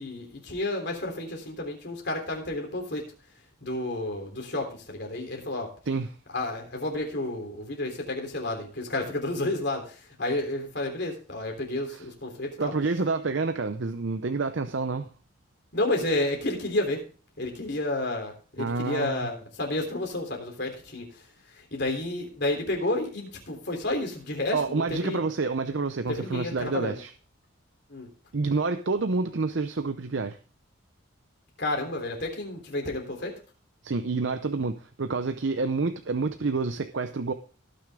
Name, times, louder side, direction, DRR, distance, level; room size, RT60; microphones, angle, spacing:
voice 1, 0.0-3.0 3.6-5.7 6.3-12.7 15.7-17.0 17.4-21.2 21.6-25.2 26.1-27.0 27.9-28.1 31.6-33.3, left 2 dB, 55° left, 2 dB, 3.5 m, -31 dB
voice 2, 5.9-6.2 11.9-12.0 12.6-15.1 18.6-19.3 24.5-27.1 28.3-30.4 33.8-37.3, right 4 dB, 65° right, 9 dB, 0.6 m, -28 dB
18.5 x 6.5 x 3.6 m, 0.38 s
head